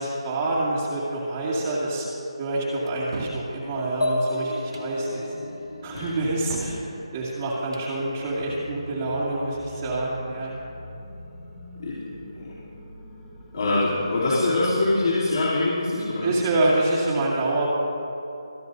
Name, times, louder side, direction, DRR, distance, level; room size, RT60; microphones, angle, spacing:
voice 1, 0.0-2.1 2.4-5.2 5.8-6.8 7.1-10.5 16.2-17.7, right 2 dB, 30° right, -7 dB, 2.3 m, -26 dB
sound 1, 2.9-3.4 4.6-4.9 6.0-6.8 7.6-7.9, right 3 dB, 55° right, 1.1 m, -37 dB
sound 2, 4.0-7.7, left 1 dB, 75° left, 1.8 m, -32 dB
sound 3, 8.1-15.8, equal, 10° left, 1.5 m, -43 dB
voice 2, 13.5-16.4, left 2 dB, 55° left, -10 dB, 3.3 m, -23 dB
27.0 x 9.7 x 2.7 m, 2.8 s
figure-of-eight pair, 155°, 3 cm